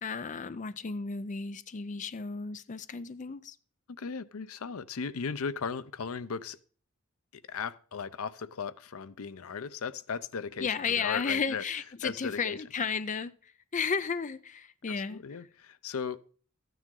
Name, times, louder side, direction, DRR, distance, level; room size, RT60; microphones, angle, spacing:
voice 1, 0.0-3.6 10.6-15.2, left 5 dB, 35° left, 0.5 m, -33 dB
voice 2, 3.9-6.6 7.3-11.6 12.0-12.6 15.1-16.3, left 5 dB, 85° left, 0.6 m, -37 dB
14.0 x 9.3 x 3.8 m
head